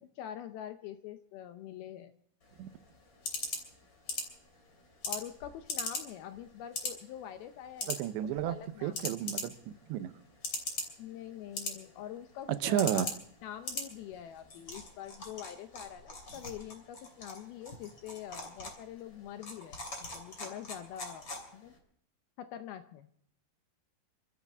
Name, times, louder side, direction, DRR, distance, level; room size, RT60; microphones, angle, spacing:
voice 1, 0.2-2.2 5.0-8.0 8.4-9.0 11.0-13.1 13.4-21.3 21.5-21.7 22.4-23.1, left 10 dB, 80° left, 9 dB, 2.3 m, -45 dB
sound 1, 2.4-21.8, left 2 dB, 30° left, 3.1 m, -42 dB
voice 2, 7.9-10.2 12.5-13.1, right 11 dB, 80° right, 11 dB, 3.0 m, -32 dB
28.0 x 13.0 x 3.5 m, 0.66 s
omnidirectional pair, 5.0 m